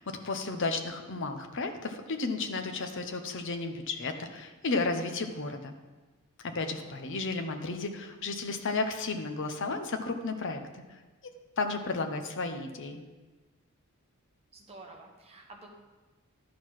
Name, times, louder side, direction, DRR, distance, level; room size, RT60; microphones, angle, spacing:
voice 1, 0.0-5.7 6.4-10.6 11.6-13.0, left 3 dB, 55° left, 6 dB, 0.8 m, -33 dB
voice 2, 6.7-7.2 14.5-15.7, right 2 dB, 25° right, 0 dB, 1.3 m, -51 dB
11.5 x 4.6 x 6.0 m, 1.2 s
head